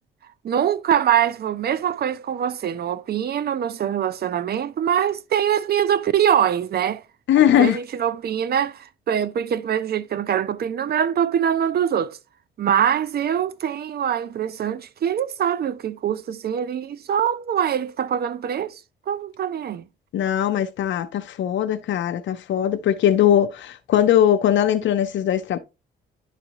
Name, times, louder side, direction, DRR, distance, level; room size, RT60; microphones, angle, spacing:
voice 1, 0.4-7.0 7.6-12.2 12.6-18.8 19.1-19.8, right 9 dB, 55° right, 0.7 m, -23 dB
voice 2, 7.3-7.8 20.1-25.6, left 10 dB, 70° left, 0.7 m, -20 dB
11.0 x 4.1 x 2.9 m
cardioid pair, 90°, 20 cm